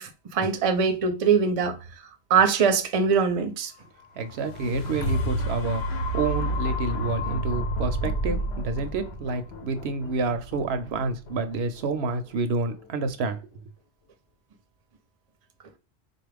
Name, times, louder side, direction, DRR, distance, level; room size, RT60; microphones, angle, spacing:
voice 1, 0.0-1.7 2.3-3.7, right 6 dB, 40° right, 0.5 m, -22 dB
sound 1, 4.2-12.3 12.8-12.9, equal, 70° left, 0.9 m, -30 dB
voice 2, 4.2-13.4, right 3 dB, 75° right, 0.8 m, -29 dB
4.0 x 2.4 x 3.3 m
omnidirectional pair, 1.1 m